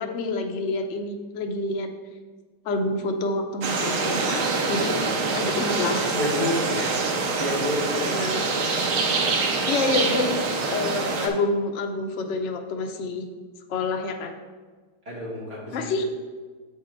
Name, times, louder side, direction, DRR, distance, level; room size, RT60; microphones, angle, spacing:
voice 1, 0.0-1.9 2.6-5.0 5.3-6.1 8.0-8.4 9.7-10.3 10.7-13.2 13.7-14.3 15.7-16.0, left 3 dB, 75° left, 3 dB, 0.6 m, -27 dB
sound 1, 3.6-11.3, right 4 dB, 90° right, 1.7 m, -25 dB
voice 2, 6.1-8.2 15.1-16.0, left 1 dB, 35° right, -5 dB, 2.3 m, -30 dB
7.5 x 5.1 x 4.5 m, 1.4 s
omnidirectional pair, 2.2 m